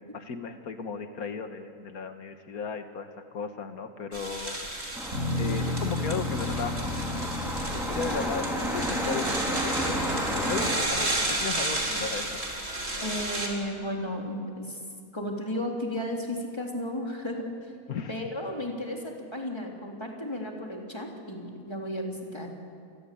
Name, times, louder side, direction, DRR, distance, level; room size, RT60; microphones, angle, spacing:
voice 1, 0.1-3.1 3.3-4.9 5.4-6.9 7.7-8.5 8.7-10.1 10.5-12.4 17.9-18.1, left 5 dB, 90° left, 7 dB, 1.9 m, -35 dB
sound 1, 4.1-13.5, right 1 dB, 45° right, 4.5 m, -32 dB
sound 2, 4.9-10.8, equal, ahead, 4.2 m, -31 dB
Bass guitar, 5.1-9.5, left 3 dB, 65° right, 7.3 m, -33 dB
voice 2, 13.0-14.8 15.1-17.6 18.1-22.5, left 1 dB, 20° left, 0 dB, 3.7 m, -34 dB
29.5 x 22.5 x 8.6 m, 2.3 s
omnidirectional pair, 1.5 m